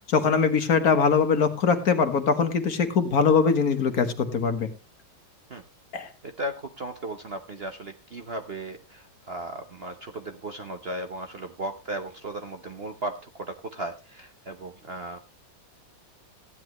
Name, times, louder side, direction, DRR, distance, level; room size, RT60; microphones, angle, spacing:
voice 1, 0.0-4.7 5.9-6.1, left 5 dB, 55° left, 8 dB, 1.6 m, -22 dB
voice 2, 6.2-15.2, right 1 dB, 45° right, 6 dB, 0.9 m, -36 dB
15.0 x 10.5 x 3.0 m, 0.28 s
omnidirectional pair, 2.0 m